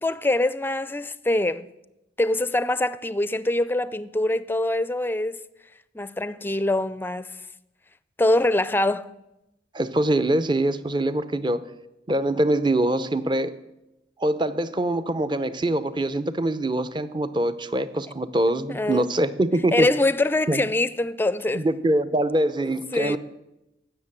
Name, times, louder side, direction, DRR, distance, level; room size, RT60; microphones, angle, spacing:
voice 1, 0.0-1.7 2.2-5.4 5.9-7.3 8.2-9.1 18.7-19.1 19.7-21.7 22.6-23.2, left 1 dB, 10° left, 0.4 m, -24 dB
voice 2, 9.7-11.6 12.1-13.5 14.2-19.9 20.5-20.6 21.5-23.2, right 1 dB, 25° right, 0.7 m, -24 dB
15.5 x 6.6 x 9.7 m
head